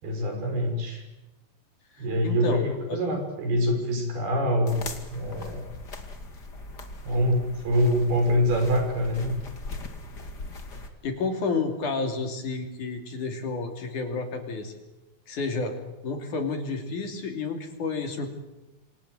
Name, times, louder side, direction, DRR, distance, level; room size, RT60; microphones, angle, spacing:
voice 1, 0.0-1.0 2.0-5.7 7.0-9.3, equal, 75° right, 4 dB, 7.8 m, -25 dB
voice 2, 1.9-3.0 11.0-14.8 15.3-15.7 16.0-18.3, left 3 dB, 55° left, 5 dB, 4.3 m, -30 dB
sound 1, 4.7-10.9, left 3 dB, 30° left, 2.4 m, -40 dB
28.5 x 25.5 x 8.0 m, 1.0 s
omnidirectional pair, 4.5 m